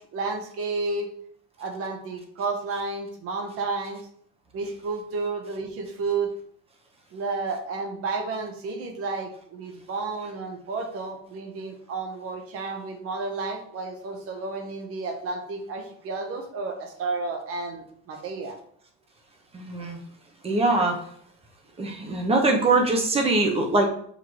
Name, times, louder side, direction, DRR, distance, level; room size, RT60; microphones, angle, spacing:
voice 1, 0.1-1.1 1.6-4.1 4.5-6.3 7.1-18.6, right 3 dB, 50° right, 4 dB, 1.2 m, -31 dB
voice 2, 19.5-20.0 20.4-21.0 21.8-23.9, right 2 dB, 20° right, 2 dB, 0.9 m, -22 dB
6.7 x 4.6 x 3.2 m, 0.64 s
cardioid pair, 175°, 29 cm